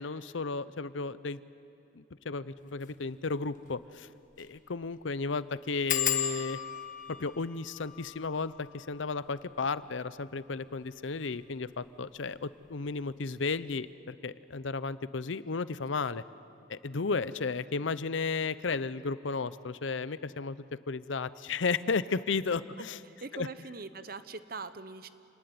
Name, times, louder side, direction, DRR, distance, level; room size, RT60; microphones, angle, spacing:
voice 1, 0.0-1.4 2.0-4.1 4.4-6.6 7.2-16.2 16.7-20.6 20.9-23.0 23.3-23.5, left 4 dB, 75° left, 15 dB, 0.7 m, -33 dB
sound 1, 2.7-2.9 3.3-3.4 3.7-3.8 4.3-4.6 4.8-4.9 5.9-11.2 11.8-12.4 12.7-13.0 13.3-13.4, left 10 dB, 40° left, 1.3 m, -37 dB
voice 2, 23.1-25.1, right 3 dB, 50° right, 12 dB, 0.9 m, -42 dB
27.5 x 19.5 x 9.6 m, 2.7 s
head